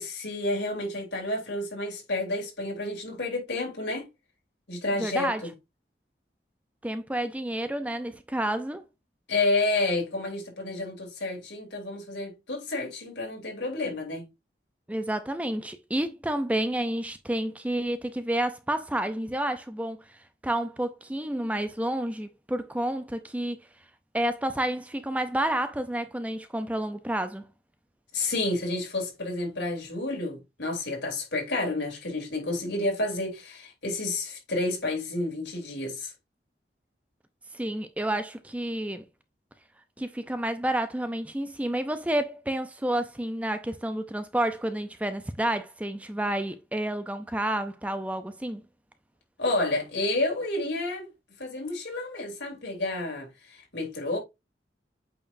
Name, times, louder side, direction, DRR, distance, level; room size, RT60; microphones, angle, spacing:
voice 1, 0.0-4.1 4.7-5.3 9.3-14.3 28.1-36.1 49.4-51.1 51.4-54.2, left 2 dB, 80° left, 3.1 m, -30 dB
voice 2, 5.0-5.4 6.8-8.8 14.9-20.0 20.4-23.7 24.1-27.5 37.5-39.0 40.0-48.6, right 1 dB, 10° right, 0.4 m, -30 dB
8.4 x 4.3 x 2.6 m
head